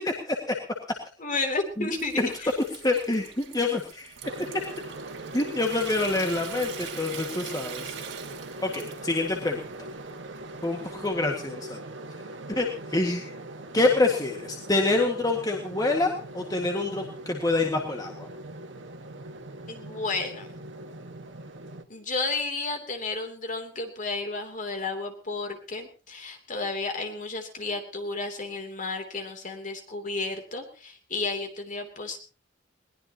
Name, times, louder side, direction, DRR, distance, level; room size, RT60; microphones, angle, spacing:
voice 1, 0.0-0.6 1.8-1.9 2.2-2.3 2.8-4.1 4.5-4.8 5.3-7.9 8.6-9.9 10.6-11.8 12.5-13.3 13.7-18.3, left 2 dB, 20° left, 1 dB, 1.8 m, -26 dB
voice 2, 1.2-2.5 19.7-20.6 21.9-32.2, left 3 dB, 40° left, 5 dB, 3.0 m, -32 dB
Water tap faucet / Sink (filling or washing) / Trickle dribble, 1.5-11.4, right 8 dB, 90° right, 3.0 m, -44 dB
sound 1, 4.2-21.8, right 2 dB, 75° right, 1.6 m, -41 dB
21.5 x 19.0 x 2.9 m, 0.35 s
head